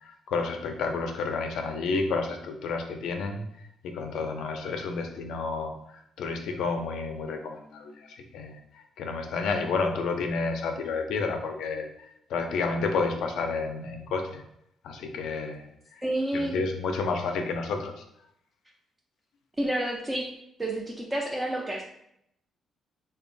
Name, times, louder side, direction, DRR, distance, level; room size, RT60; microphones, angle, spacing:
voice 1, 0.0-3.4 3.8-5.7 6.2-8.6 9.0-11.9 12.3-14.4 14.8-15.7 16.3-18.0, left 4 dB, 80° left, 5 dB, 0.4 m, -30 dB
voice 2, 16.0-16.6 19.6-20.3 20.6-21.8, right 1 dB, 20° right, -1 dB, 0.4 m, -29 dB
2.8 x 2.2 x 2.5 m, 0.75 s
cardioid pair, 80°, 0 cm